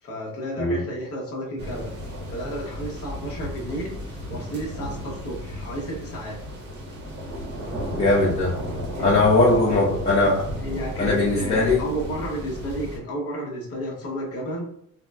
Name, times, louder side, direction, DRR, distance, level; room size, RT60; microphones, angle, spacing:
voice 1, 0.0-1.9 2.3-6.4 8.9-9.1 9.4-9.8 10.6-14.7, equal, 50° left, -1 dB, 0.9 m, -32 dB
sound 1, 1.6-13.0, equal, 35° right, 0.7 m, -34 dB
voice 2, 7.9-8.6 9.0-10.5 11.0-11.8, left 2 dB, 20° left, -7 dB, 0.6 m, -20 dB
3.9 x 2.0 x 2.2 m, 0.69 s
cardioid pair, 160°, 30 cm